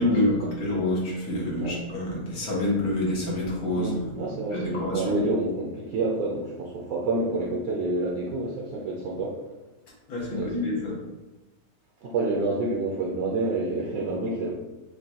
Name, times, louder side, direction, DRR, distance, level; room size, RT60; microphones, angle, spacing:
voice 1, 0.0-3.9 4.5-5.1 10.1-10.9, left 1 dB, 85° left, -5 dB, 1.7 m, -27 dB
voice 2, 3.7-9.4 10.3-10.5 12.0-14.5, right 2 dB, 70° right, -3 dB, 1.1 m, -28 dB
6.5 x 2.3 x 2.8 m, 1.1 s
omnidirectional pair, 1.6 m